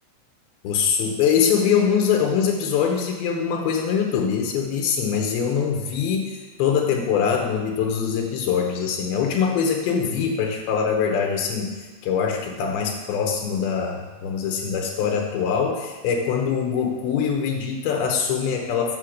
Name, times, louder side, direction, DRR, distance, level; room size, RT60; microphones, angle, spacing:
voice 1, 0.6-6.2 6.6-11.8 12.0-19.0, left 7 dB, 90° left, 2 dB, 2.2 m, -23 dB
7.4 x 6.9 x 6.4 m, 1.4 s
omnidirectional pair, 5.8 m